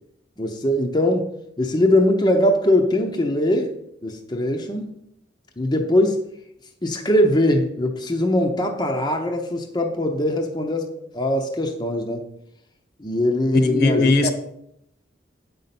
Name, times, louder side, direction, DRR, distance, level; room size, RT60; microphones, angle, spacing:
voice 1, 0.4-1.3 1.6-3.7 4.0-4.9 5.6-6.2 6.8-12.3 13.0-14.3, left 1 dB, 20° left, 2 dB, 0.7 m, -21 dB
voice 2, 13.5-14.3, left 3 dB, 55° left, 7 dB, 1.0 m, -19 dB
8.6 x 5.4 x 5.9 m, 0.78 s
head